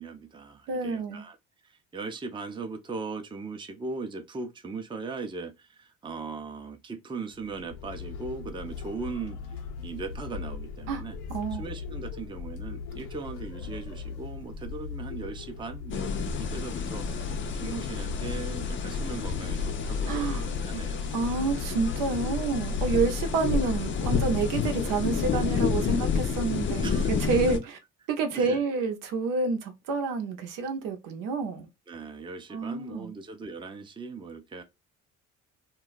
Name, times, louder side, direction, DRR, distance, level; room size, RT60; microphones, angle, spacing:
voice 1, 0.0-1.4 1.6-9.4 9.8-11.2 11.6-21.5 26.8-27.2 28.3-28.6 31.9-34.6, right 4 dB, 15° right, 0.6 m, -39 dB
voice 2, 0.7-1.2 10.9-11.0 11.3-11.6 20.1-20.4 21.1-27.8 28.1-31.7 32.5-33.1, right 4 dB, 75° right, 0.8 m, -29 dB
sound 1, 7.3-25.6, left 5 dB, 80° left, 0.7 m, -40 dB
sound 2, 15.9-27.6, left 6 dB, 35° left, 0.5 m, -29 dB
2.3 x 2.1 x 3.8 m
supercardioid pair, 70°, 33 cm